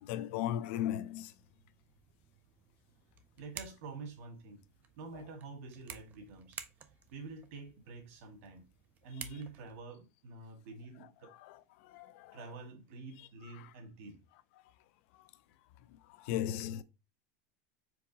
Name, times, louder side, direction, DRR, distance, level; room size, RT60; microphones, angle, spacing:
voice 1, 0.0-1.3 11.8-12.4 16.2-16.8, left 11 dB, 50° left, 0.4 m, -36 dB
sound 1, 1.4-9.8, right 8 dB, 20° right, 0.4 m, -53 dB
voice 2, 3.4-4.6 5.0-6.6 7.1-8.7 9.0-11.3 12.3-14.2, right 3 dB, 60° right, 1.6 m, -47 dB
4.6 x 3.7 x 2.8 m
supercardioid pair, 170°, 8 cm